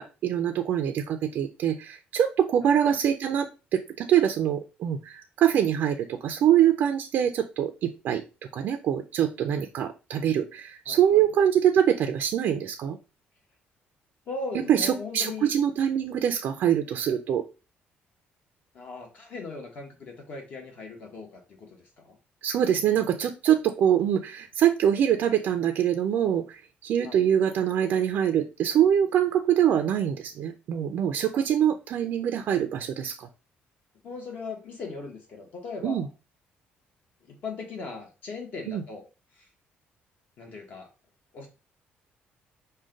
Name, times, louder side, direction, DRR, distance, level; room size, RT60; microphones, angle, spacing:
voice 1, 0.0-8.2 8.5-13.0 14.7-17.4 22.4-33.3 35.8-36.1 38.7-38.8, right 9 dB, 55° right, 6 dB, 0.4 m, -24 dB
voice 2, 2.6-3.0 10.9-11.2 14.3-15.5 18.7-21.7 22.0-22.2 27.0-27.2 31.3-31.4 34.0-36.1 37.2-39.0 39.3-39.5 40.4-40.9 41.3-41.5, left 3 dB, 45° left, 2 dB, 1.0 m, -39 dB
6.2 x 2.2 x 3.7 m, 0.31 s
cardioid pair, 170°, 4 cm